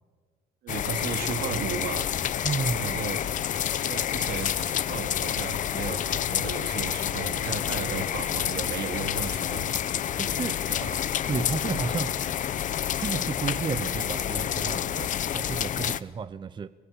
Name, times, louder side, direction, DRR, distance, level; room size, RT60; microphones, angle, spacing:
voice 1, 0.6-2.1 2.8-3.4 3.8-9.8 10.3-10.4 10.7-11.0, right 6 dB, 75° right, 6 dB, 2.7 m, -35 dB
sound 1, 0.7-16.0, left 10 dB, 50° left, 0.7 m, -29 dB
voice 2, 2.4-3.0 10.2-10.6 11.3-12.2 13.0-16.7, right 5 dB, 30° right, 14 dB, 0.7 m, -32 dB
23.5 x 20.5 x 7.5 m, 1.4 s
cardioid pair, 110°, 17 cm